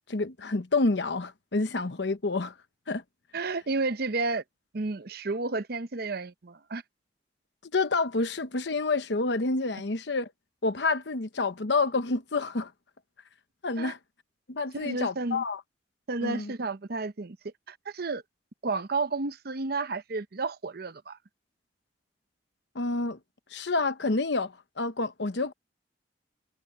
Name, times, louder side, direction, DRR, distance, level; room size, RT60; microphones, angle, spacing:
voice 1, 0.1-2.5 2.9-3.0 7.7-10.3 10.6-12.7 13.6-14.0 14.5-15.6 16.2-16.5 22.7-23.2 23.5-25.5, left 3 dB, 70° left, 1.0 m, -28 dB
voice 2, 3.3-4.4 4.7-6.8 13.8-13.9 14.7-15.4 16.1-17.4 17.7-18.2 18.6-21.2, right 3 dB, 60° right, 0.8 m, -31 dB
head